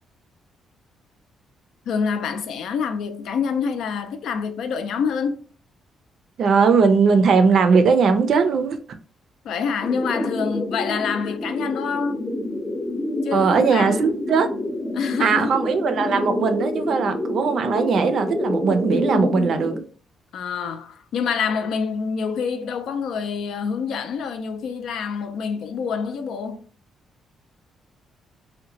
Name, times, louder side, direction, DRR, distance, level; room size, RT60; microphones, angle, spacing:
voice 1, 1.9-5.4 9.4-12.2 13.2-14.0 14.9-15.5 20.3-26.6, left 6 dB, 75° left, 0.4 m, -26 dB
voice 2, 6.4-8.8 13.3-14.5 15.2-19.7, right 5 dB, 60° right, 0.4 m, -19 dB
sound 1, 9.8-19.8, left 1 dB, 25° left, 0.6 m, -28 dB
2.8 x 2.1 x 2.7 m
cardioid pair, 90°, 0 cm